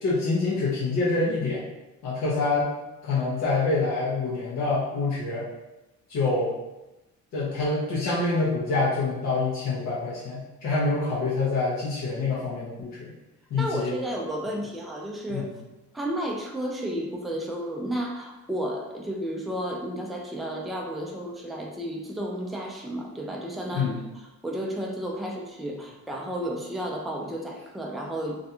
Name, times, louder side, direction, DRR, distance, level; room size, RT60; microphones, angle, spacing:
voice 1, 0.0-1.6 2.0-2.7 3.0-5.5 6.1-6.5 7.3-13.1 13.5-13.9 15.3-15.5 23.7-24.0, left 3 dB, 65° left, -6 dB, 0.7 m, -26 dB
voice 2, 13.5-15.5 15.9-28.4, equal, ahead, -1 dB, 0.4 m, -32 dB
2.4 x 2.2 x 2.8 m, 0.99 s
cardioid pair, 90°, 30 cm